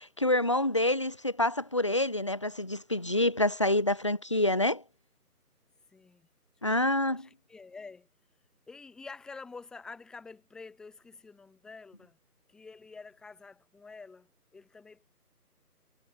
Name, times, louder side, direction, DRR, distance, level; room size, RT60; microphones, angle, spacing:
voice 1, 0.0-4.8 6.6-7.3, left 1 dB, 20° left, 1.1 m, -27 dB
voice 2, 5.9-6.3 6.6-8.1 8.7-12.2 12.5-15.1, left 4 dB, ahead, 2.9 m, -48 dB
figure-of-eight pair, 160°, 47 cm